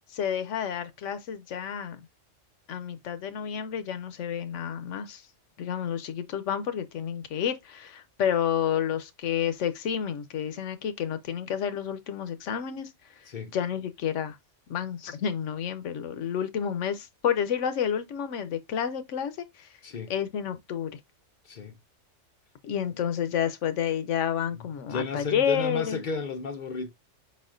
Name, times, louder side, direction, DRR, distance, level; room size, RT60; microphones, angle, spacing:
voice 1, 0.1-2.0 2.7-5.2 5.6-12.9 13.2-14.4 14.7-19.7 20.1-21.0 22.6-26.0, left 8 dB, 75° left, 1.0 m, -30 dB
voice 2, 19.8-20.1 21.4-21.8 24.5-26.9, left 5 dB, 55° left, 0.5 m, -33 dB
4.8 x 4.2 x 2.4 m
omnidirectional pair, 1.3 m